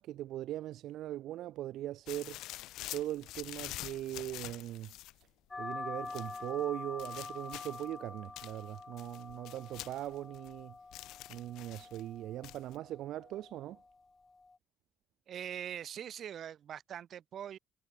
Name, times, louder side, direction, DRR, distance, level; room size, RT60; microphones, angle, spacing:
voice 1, 0.0-2.4 2.9-4.9 5.6-10.7 11.3-13.8, right 13 dB, 65° right, 2.7 m, -40 dB
sound 1, 2.1-5.2 6.0-6.5 7.0-7.9 8.4-10.6 10.9-12.0 12.4-12.8, left 16 dB, 90° left, 3.8 m, -46 dB
sound 2, 5.5-14.6, left 3 dB, 15° left, 5.9 m, -46 dB
voice 2, 15.3-17.6, right 9 dB, 45° right, 5.7 m, -42 dB
cardioid pair, 170°, 0 cm